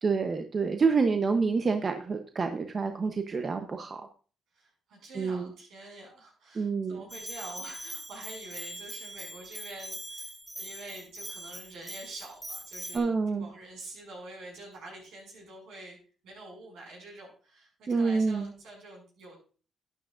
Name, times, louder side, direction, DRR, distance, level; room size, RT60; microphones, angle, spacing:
voice 1, 0.0-4.0 5.2-5.5 6.5-7.0 12.9-13.5 17.9-18.5, right 4 dB, 40° right, 6 dB, 0.9 m, -27 dB
voice 2, 4.5-16.0 16.2-19.4, right 2 dB, 80° right, 0 dB, 6.1 m, -46 dB
Bell, 7.1-13.0, right 1 dB, 10° right, 2.6 m, -42 dB
12.0 x 9.7 x 2.6 m, 0.38 s
cardioid pair, 90°, 0 cm